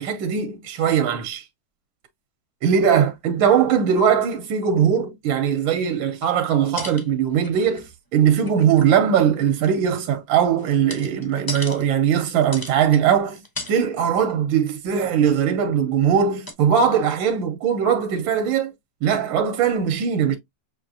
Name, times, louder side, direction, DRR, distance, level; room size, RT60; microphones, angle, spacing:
voice 1, 0.0-1.4 2.6-7.8 8.1-13.4 13.7-18.7 19.0-20.4, right 8 dB, 70° right, 1.5 m, -20 dB
sound 1, 6.7-8.0 8.2-9.0 9.4-11.8 12.4-13.0 13.4-13.8 14.1-14.3 14.7-15.4 16.2-16.3 16.5-16.6, left 2 dB, 30° left, 0.4 m, -36 dB
6.4 x 2.9 x 2.7 m
omnidirectional pair, 2.3 m